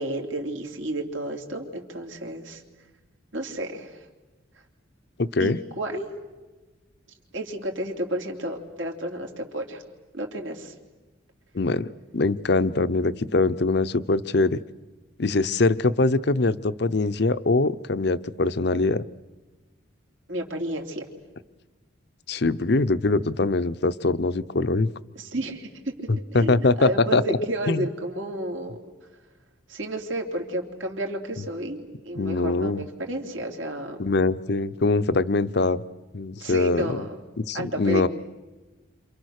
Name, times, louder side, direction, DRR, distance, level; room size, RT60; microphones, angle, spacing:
voice 1, 0.0-2.6 3.3-4.1 5.4-6.1 7.3-9.8 10.1-10.7 20.3-21.0 25.1-28.8 29.7-34.0 36.4-37.2 37.5-38.1, right 1 dB, 70° right, 2 dB, 3.2 m, -31 dB
voice 2, 5.2-5.6 11.5-11.9 12.1-14.6 15.2-19.0 22.3-24.9 26.3-27.4 27.7-27.9 32.2-32.8 34.0-35.8 36.1-37.0 37.4-38.1, left 3 dB, 55° left, 14 dB, 0.7 m, -23 dB
29.0 x 27.0 x 6.6 m, 1.2 s
head